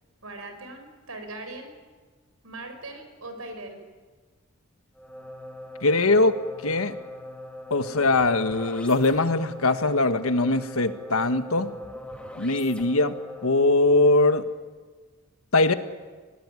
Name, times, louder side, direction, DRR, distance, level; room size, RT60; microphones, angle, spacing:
voice 1, 0.2-1.8 2.4-3.8, right 2 dB, 85° right, 7 dB, 4.9 m, -40 dB
sound 1, 4.9-13.7, left 1 dB, 5° left, 2.4 m, -41 dB
voice 2, 5.8-6.4 6.6-6.9 7.7-11.7 12.4-13.1 13.4-14.4 15.5-15.7, left 2 dB, 80° left, 9 dB, 1.5 m, -21 dB
23.5 x 18.5 x 9.8 m, 1.4 s
head